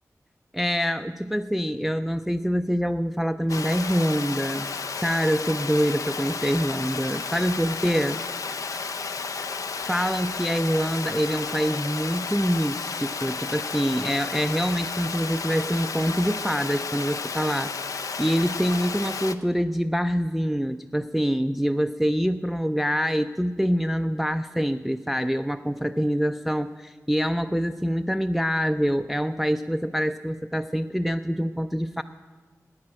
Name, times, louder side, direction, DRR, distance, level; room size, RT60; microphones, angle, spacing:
voice 1, 0.5-4.7 5.0-8.2 9.8-17.7 18.2-32.0, equal, 5° right, 11 dB, 0.3 m, -25 dB
Water, 3.5-19.3, left 5 dB, 75° left, 0.5 m, -32 dB
9.7 x 9.5 x 9.6 m, 1.4 s
wide cardioid pair, 90°, 6 cm